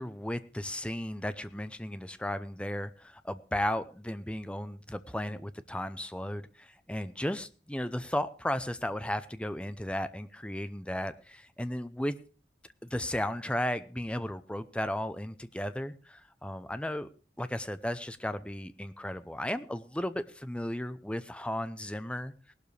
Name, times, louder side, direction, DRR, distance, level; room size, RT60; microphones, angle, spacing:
voice 1, 0.0-12.1 12.8-17.1 17.4-22.5, left 1 dB, 5° left, 12 dB, 0.6 m, -35 dB
18.5 x 12.0 x 3.3 m, 0.38 s
head